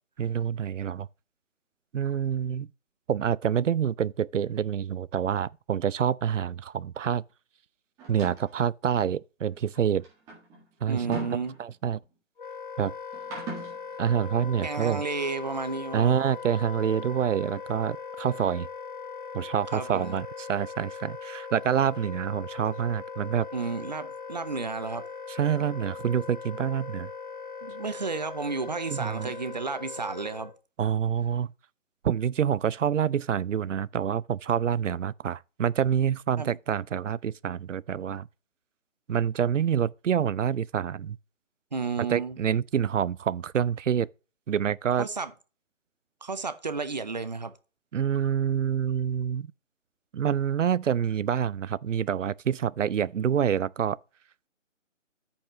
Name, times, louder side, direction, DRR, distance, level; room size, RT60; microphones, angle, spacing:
voice 1, 0.2-1.1 1.9-2.7 3.1-7.2 8.1-10.0 10.8-11.2 11.6-12.0 12.8-12.9 14.0-15.0 15.9-18.7 19.3-23.5 25.3-27.1 28.9-29.3 30.8-31.5 32.0-38.3 39.1-41.2 42.0-44.1 44.5-45.1 47.9-49.5 50.1-54.0, right 8 dB, 70° right, 0.5 m, -27 dB
sound 1, 8.0-8.5 9.6-12.0 13.1-13.8, right 2 dB, 10° right, 1.8 m, -40 dB
voice 2, 10.9-11.5 14.6-16.1 19.7-20.2 23.5-25.0 27.6-30.5 36.4-36.6 41.7-42.4 45.0-45.3 46.2-47.5, right 4 dB, 35° right, 0.7 m, -32 dB
Wind instrument woodwind instrument, 12.4-30.6, left 5 dB, 40° left, 0.5 m, -40 dB
13.5 x 5.4 x 3.0 m
figure-of-eight pair, 155°, 39 cm